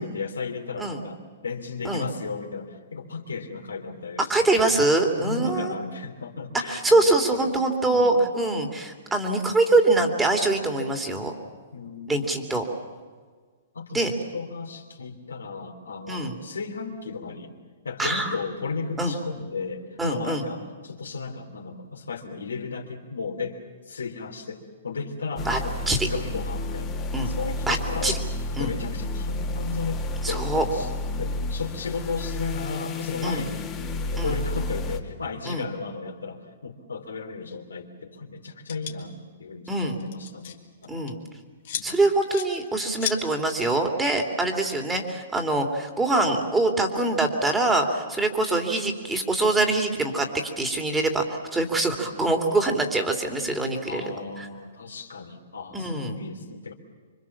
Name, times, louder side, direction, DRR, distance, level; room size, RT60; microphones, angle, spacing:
voice 1, 0.0-4.5 5.2-7.1 7.4-7.6 7.9-8.2 11.7-12.6 13.7-17.5 17.8-23.6 23.8-26.9 27.2-28.2 28.6-30.9 31.2-33.8 34.1-41.0 41.7-42.0 52.0-52.3 53.9-56.7, left 4 dB, 85° left, 2 dB, 3.3 m, -35 dB
voice 2, 4.2-5.7 6.6-11.3 12.1-12.6 13.9-14.1 16.1-16.4 18.0-18.3 19.0-19.1 20.0-20.4 25.5-25.6 25.9-26.1 27.1-27.3 27.7-27.8 28.0-28.1 28.6-28.7 30.2-30.6 33.2-33.5 34.2-34.3 35.5-35.6 39.7-40.0 40.9-41.1 41.8-50.3 50.6-51.3 51.5-54.0 55.7-56.2, right 2 dB, 10° right, 3 dB, 3.1 m, -24 dB
sound 1, 25.4-35.0, left 2 dB, 25° left, 2.3 m, -31 dB
sound 2, 38.7-38.9 39.9-40.6 40.8-41.1 41.6-41.9 42.3-42.5 43.0-43.2, left 11 dB, 55° left, 2.7 m, -32 dB
26.5 x 24.0 x 7.4 m, 1.5 s
hypercardioid pair, 125°, 0 cm